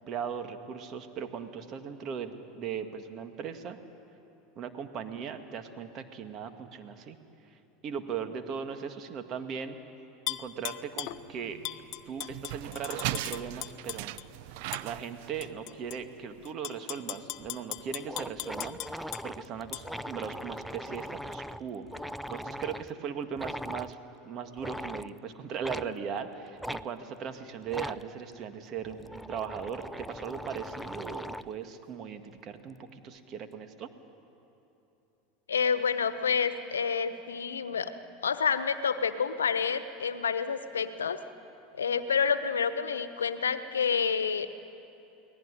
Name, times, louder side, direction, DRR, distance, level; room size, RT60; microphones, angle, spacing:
voice 1, 0.1-3.8 4.6-7.2 7.8-9.8 10.3-11.6 12.1-14.2 14.8-24.0 24.2-33.9, right 7 dB, 45° right, 7 dB, 2.0 m, -38 dB
Tap / Glass, 10.3-11.2 11.6-14.3 14.7-14.9 15.4-16.0 16.5-19.2 19.7-19.8, left 17 dB, 55° left, 0.8 m, -38 dB
sound 1, 11.1-16.5, right 16 dB, 65° right, 0.6 m, -39 dB
sound 2, 17.4-17.5 17.8-17.9 18.1-22.9 23.4-23.9 24.6-25.1 25.6-25.9 26.6-26.8 27.7-28.0 28.8-31.6, equal, ahead, 0.6 m, -40 dB
voice 2, 35.5-37.9 38.2-41.2 41.8-44.5, left 6 dB, 90° left, 12 dB, 1.0 m, -28 dB
23.5 x 17.5 x 9.9 m, 2.9 s
hypercardioid pair, 85°, 0 cm